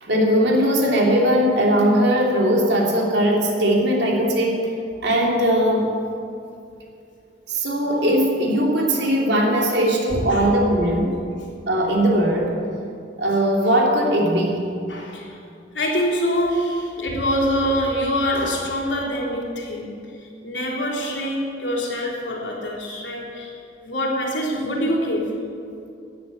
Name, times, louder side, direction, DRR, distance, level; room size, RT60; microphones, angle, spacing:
voice 1, 0.0-4.7 5.0-5.9 7.5-11.1 11.7-12.5 13.2-14.7, equal, 70° right, -1 dB, 3.0 m, -19 dB
voice 2, 10.1-10.5 14.9-15.4 15.7-25.3, equal, 90° left, -2 dB, 3.6 m, -25 dB
16.0 x 10.5 x 7.4 m, 2.5 s
head